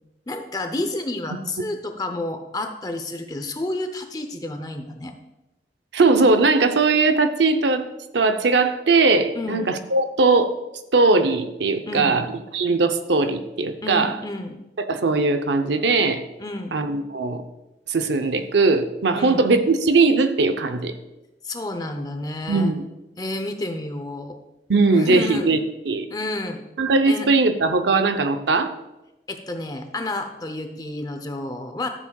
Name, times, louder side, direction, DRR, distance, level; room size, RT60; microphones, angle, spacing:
voice 1, 0.3-5.1 9.3-9.7 11.9-12.2 13.8-14.6 16.4-16.8 19.1-19.4 21.4-22.7 23.2-24.4 24.9-25.5 26.1-26.6 27.0-27.3 29.3-31.9, left 2 dB, 20° left, 6 dB, 0.6 m, -30 dB
voice 2, 5.9-7.8 8.1-10.5 10.9-12.2 12.5-14.1 14.8-16.2 16.7-17.4 17.9-20.9 22.5-22.8 24.7-25.6 25.9-26.1 26.8-28.7, right 3 dB, 75° right, 8 dB, 0.6 m, -19 dB
13.0 x 7.2 x 2.3 m, 0.98 s
head